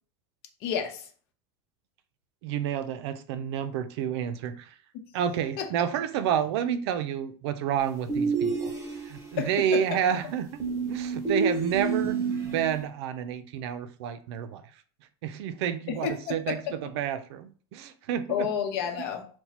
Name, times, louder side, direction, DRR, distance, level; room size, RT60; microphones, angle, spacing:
voice 1, 0.6-1.1 5.6-5.7 9.4-9.5 15.9-16.6 18.3-19.3, left 8 dB, 60° left, 0.8 m, -30 dB
voice 2, 2.4-4.7 5.1-8.7 9.0-10.6 10.9-12.2 12.5-14.6 15.2-18.5, right 9 dB, 70° right, 0.4 m, -30 dB
sound 1, 8.1-9.4 10.6-12.8, right 4 dB, 20° right, 1.0 m, -29 dB
2.9 x 2.2 x 3.9 m
supercardioid pair, 145°, 14 cm